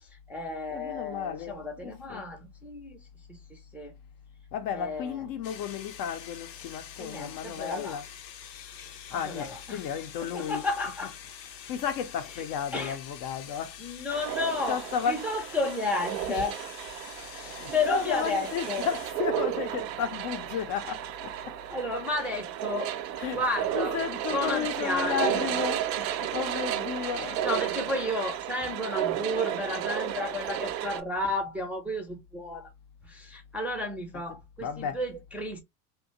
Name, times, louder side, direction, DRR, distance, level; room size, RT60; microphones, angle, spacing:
voice 1, 0.0-4.0 4.7-5.3 7.0-8.0 9.1-9.8 10.2-11.2 12.3-12.4 12.7-13.0 13.8-16.6 17.3-18.9 21.7-22.9 23.3-24.0 24.3-25.4 26.0-26.5 27.1-32.7 33.0-35.6, left 2 dB, 5° right, 0.5 m, -33 dB
voice 2, 0.7-1.6 1.8-2.3 4.5-8.0 9.1-10.6 11.7-13.8 14.7-15.2 17.2-21.6 23.2-23.4 23.7-25.8 26.3-27.4 34.6-35.0, left 8 dB, 45° left, 0.6 m, -33 dB
sound 1, 5.4-19.1, left 9 dB, 90° left, 0.7 m, -46 dB
sound 2, 14.1-31.0, right 11 dB, 80° right, 0.6 m, -33 dB
2.7 x 2.2 x 2.6 m
hypercardioid pair, 85°, 49 cm